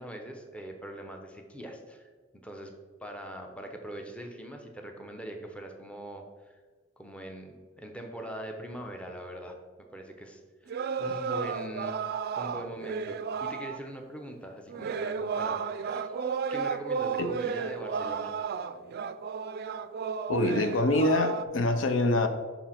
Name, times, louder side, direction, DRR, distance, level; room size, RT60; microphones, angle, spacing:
voice 1, 0.0-2.7 3.0-6.6 7.0-9.6 9.9-12.0 12.4-16.1 16.5-18.3, right 1 dB, 5° left, 3 dB, 0.7 m, -42 dB
sound 1, 10.7-13.8 14.7-21.4, right 6 dB, 55° right, 0.3 m, -33 dB
voice 2, 20.3-22.3, left 2 dB, 80° left, 8 dB, 0.6 m, -25 dB
5.6 x 4.7 x 5.7 m, 1.4 s
head